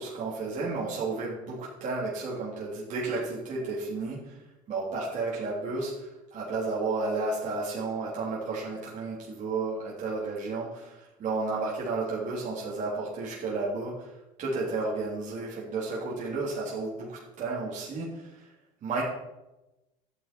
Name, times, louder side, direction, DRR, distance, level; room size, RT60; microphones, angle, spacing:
voice 1, 0.0-4.4 4.7-18.5 18.8-19.0, right 3 dB, 45° right, -5 dB, 3.3 m, -32 dB
11.0 x 7.9 x 4.5 m, 0.97 s
supercardioid pair, 90°, 17 cm